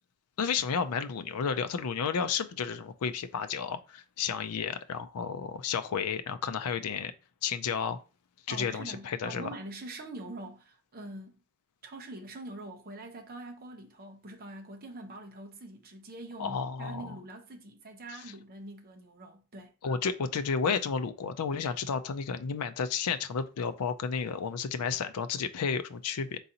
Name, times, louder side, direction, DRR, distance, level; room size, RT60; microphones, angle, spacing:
voice 1, 0.4-7.1 7.4-8.0 8.5-9.5 16.4-17.2 19.8-26.4, left 6 dB, 85° left, 0.4 m, -32 dB
voice 2, 8.5-11.4 11.8-19.7, right 2 dB, 40° right, 0.8 m, -44 dB
3.9 x 3.9 x 2.8 m
head